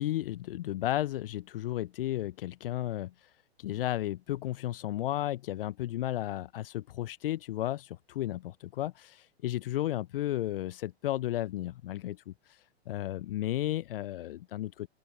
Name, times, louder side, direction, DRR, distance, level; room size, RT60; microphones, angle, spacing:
voice 1, 0.0-3.1 3.6-12.6 12.9-14.9, left 14 dB, 55° left, 0.8 m, -33 dB
open air
figure-of-eight pair, 105°, 33 cm